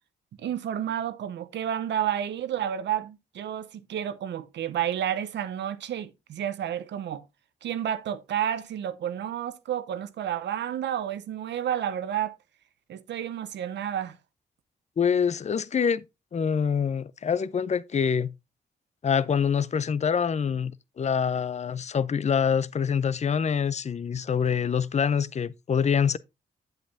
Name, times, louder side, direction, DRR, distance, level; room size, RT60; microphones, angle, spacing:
voice 1, 0.4-7.2 7.6-12.4 12.9-14.2, right 10 dB, 70° right, 0.8 m, -30 dB
voice 2, 15.0-16.0 16.3-18.3 19.0-20.7 21.0-26.2, left 7 dB, 40° left, 0.6 m, -25 dB
8.8 x 8.0 x 2.6 m
hypercardioid pair, 40°, 19 cm